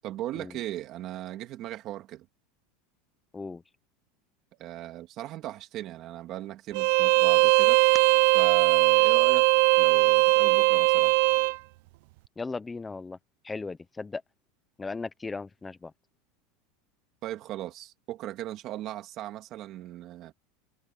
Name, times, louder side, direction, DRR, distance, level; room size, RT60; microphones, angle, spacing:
voice 1, 0.0-2.3 4.6-7.8 8.3-9.5 9.8-11.1 17.2-20.3, right 14 dB, 35° right, 2.5 m, -38 dB
Bowed string instrument, 6.7-11.6, right 31 dB, 60° right, 0.4 m, -20 dB
voice 2, 12.4-13.2 13.4-14.2 14.8-15.9, left 4 dB, 10° left, 0.5 m, -36 dB
supercardioid pair, 165°, 0 cm